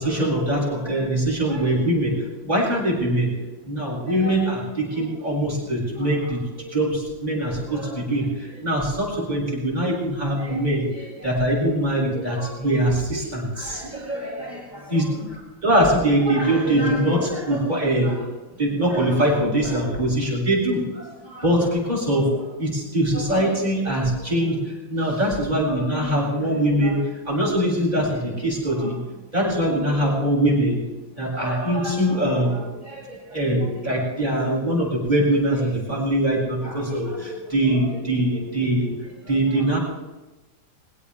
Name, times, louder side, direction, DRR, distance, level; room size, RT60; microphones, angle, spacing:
voice 1, 0.0-3.3 3.6-15.0 15.6-30.8 31.2-39.8, right 1 dB, 20° right, -4 dB, 7.6 m, -23 dB
23.0 x 16.5 x 3.7 m, 1.1 s
omnidirectional pair, 2.0 m